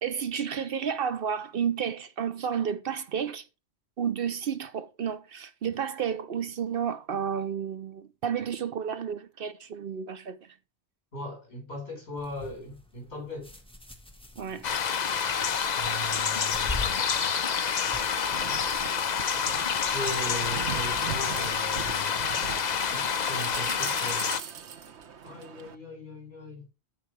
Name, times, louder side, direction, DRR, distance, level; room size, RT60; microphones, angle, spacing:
voice 1, 0.0-3.4 4.0-10.4 14.4-14.7, right 7 dB, 60° right, 0.8 m, -31 dB
voice 2, 11.1-13.5 15.7-17.3 19.7-22.2 22.9-24.3 25.2-26.6, left 1 dB, 70° left, 4.9 m, -39 dB
sound 1, 12.2-22.0, left 2 dB, 5° left, 1.3 m, -44 dB
sound 2, 14.6-24.4, left 7 dB, 45° left, 0.7 m, -28 dB
sound 3, 18.3-25.7, right 8 dB, 75° right, 1.2 m, -40 dB
14.5 x 4.9 x 3.3 m
omnidirectional pair, 1.1 m